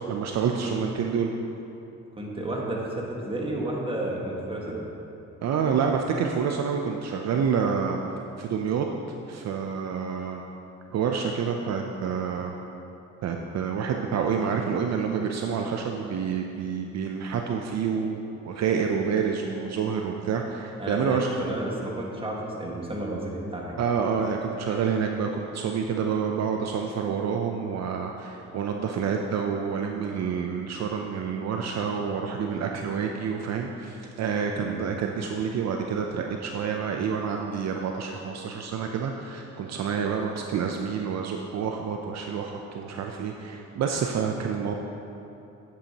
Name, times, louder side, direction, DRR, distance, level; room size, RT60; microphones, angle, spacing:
voice 1, 0.1-1.3 5.4-8.0 8.4-8.9 9.3-10.4 10.9-12.5 13.2-21.4 23.8-44.7, right 6 dB, 60° right, 2 dB, 0.6 m, -28 dB
voice 2, 2.2-4.8 20.8-23.8 34.6-34.8, right 1 dB, 20° right, -3 dB, 1.6 m, -31 dB
9.9 x 8.3 x 2.9 m, 2.8 s
cardioid pair, 90°, 30 cm